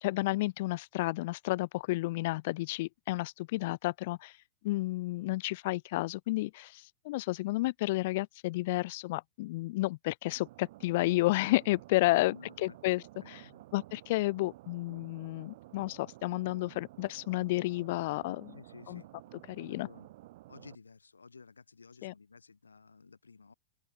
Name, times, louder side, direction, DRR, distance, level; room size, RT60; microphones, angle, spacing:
voice 1, 0.0-4.3 4.6-13.4 13.7-18.6 18.9-19.0 19.5-19.9 22.0-22.1, left 19 dB, 50° left, 0.6 m, -31 dB
sound 1, 10.2-20.8, right 17 dB, 55° right, 5.2 m, -53 dB
voice 2, 12.1-12.8 13.2-13.6 18.5-19.1 19.6-20.1 20.5-23.5, left 4 dB, 75° left, 4.7 m, -54 dB
open air
figure-of-eight pair, 90°, 0 cm